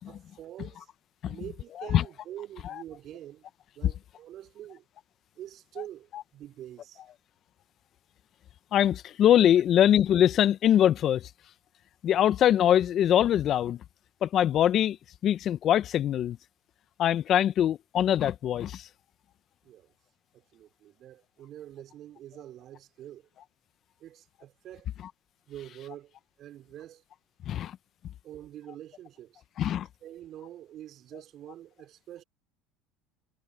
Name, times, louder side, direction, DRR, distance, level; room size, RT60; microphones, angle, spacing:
voice 1, 0.1-0.9 1.2-3.5 3.8-4.8 5.4-7.0 19.6-19.9 20.3-23.3 24.0-25.0 25.5-27.0 28.2-29.4 30.0-32.2, right 12 dB, 55° right, 5.2 m, -45 dB
voice 2, 8.7-11.3 12.0-13.8 14.2-15.0 15.2-16.4 17.0-18.9 27.5-27.8 29.6-29.9, left 10 dB, 50° left, 1.0 m, -23 dB
hypercardioid pair, 85°, 0 cm